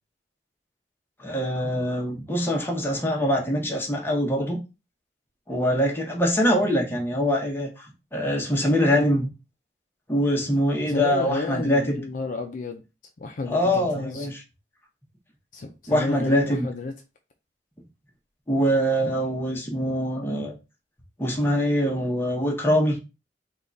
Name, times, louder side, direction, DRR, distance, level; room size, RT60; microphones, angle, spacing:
voice 1, 1.2-4.6 5.5-7.9 8.1-9.3 10.1-12.0 13.5-14.4 15.9-16.7 18.5-20.6 21.2-23.0, equal, 15° left, 0.8 m, -23 dB
voice 2, 10.9-12.8 13.2-14.3 15.5-16.9, left 3 dB, 45° left, 0.4 m, -31 dB
3.6 x 2.3 x 3.8 m
head